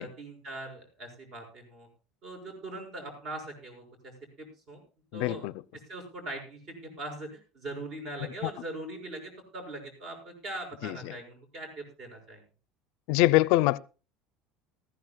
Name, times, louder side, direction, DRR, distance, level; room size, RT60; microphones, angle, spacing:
voice 1, 0.0-1.9 2.2-4.8 5.1-12.4, right 2 dB, 40° right, 6.4 m, -41 dB
voice 2, 5.1-5.5 8.4-8.5 10.8-11.1 13.1-13.8, left 17 dB, 65° left, 0.5 m, -24 dB
19.0 x 15.0 x 2.3 m
cardioid pair, 160°, 0 cm